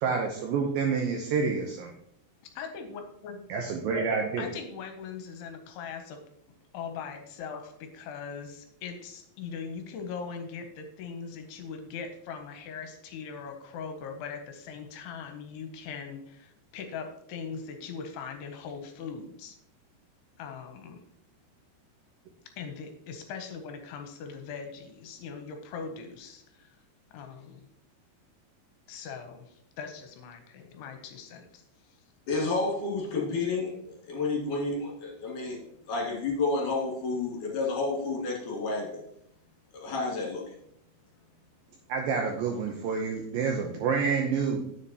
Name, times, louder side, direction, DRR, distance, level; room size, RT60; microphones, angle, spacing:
voice 1, 0.0-1.9 3.5-4.5 41.9-44.6, right 5 dB, 80° right, 2 dB, 2.1 m, -28 dB
voice 2, 2.4-3.4 4.4-6.2 6.7-19.6 20.4-21.0 22.6-26.7 27.1-27.7 28.9-31.6, left 6 dB, 80° left, 5 dB, 2.7 m, -40 dB
voice 3, 32.3-33.8 34.1-35.6 35.9-39.0 39.7-40.4, left 3 dB, 55° left, -2 dB, 3.2 m, -30 dB
9.8 x 7.4 x 2.9 m, 0.71 s
omnidirectional pair, 4.9 m